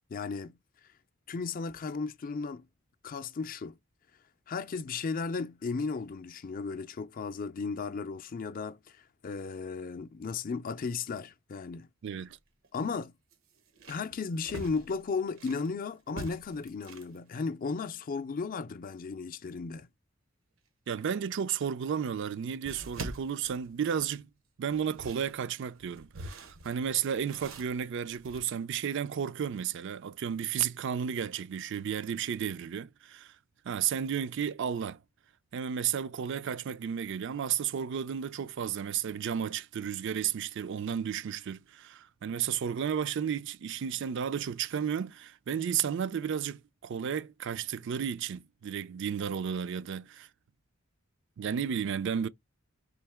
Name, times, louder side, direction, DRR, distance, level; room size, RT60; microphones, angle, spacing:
voice 1, 0.1-0.6 1.3-2.7 3.0-3.8 4.5-11.9 12.7-13.1 13.9-19.9, left 4 dB, 45° left, 0.4 m, -35 dB
voice 2, 12.0-12.4 20.9-24.3 24.6-33.3 33.7-35.0 35.5-50.3 51.4-52.3, right 8 dB, 60° right, 0.4 m, -33 dB
sound 1, 12.1-12.2 12.6-12.7 13.3-15.7 16.1-17.2 21.4-21.5 22.6-24.2 24.7-28.4, right 2 dB, 85° right, 0.9 m, -45 dB
3.9 x 2.7 x 3.4 m
head